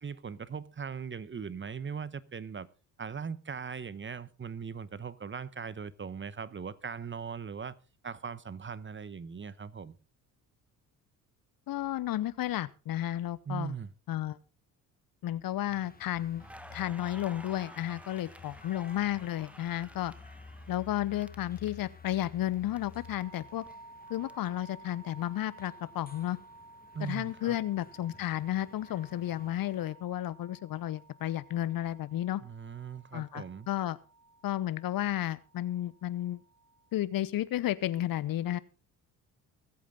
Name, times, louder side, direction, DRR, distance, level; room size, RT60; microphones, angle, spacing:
voice 1, 0.0-2.7 3.0-7.7 8.0-10.0 13.5-13.9 26.9-27.6 32.4-33.7, right 6 dB, 25° right, 1.0 m, -39 dB
voice 2, 11.7-13.7 14.1-14.4 15.2-16.4 16.7-20.1 20.7-23.6 24.1-26.4 27.0-32.4 33.1-34.0 34.4-36.4 36.9-38.6, left 13 dB, 50° left, 0.9 m, -32 dB
sound 1, 15.7-29.9, left 4 dB, 20° left, 1.8 m, -53 dB
Crackle, 16.4-22.2 22.5-24.3, equal, 5° right, 1.1 m, -52 dB
sound 2, 22.9-37.0, right 3 dB, 60° right, 5.3 m, -55 dB
22.0 x 8.5 x 3.8 m
hypercardioid pair, 55°, 43 cm